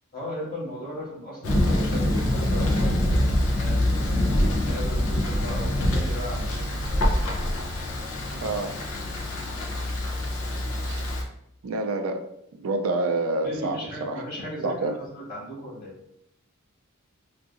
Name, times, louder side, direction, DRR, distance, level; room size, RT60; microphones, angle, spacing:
voice 1, 0.1-4.0 4.5-7.0 13.4-14.9 15.3-15.9, equal, 40° left, -7 dB, 1.4 m, -37 dB
Thunder, 1.4-11.2, left 1 dB, 70° left, 0.6 m, -25 dB
voice 2, 8.4-8.8 10.9-11.0 11.6-12.3 12.6-14.2 14.6-14.9, right 2 dB, 70° right, 4 dB, 0.4 m, -28 dB
3.7 x 2.5 x 2.5 m, 0.76 s
head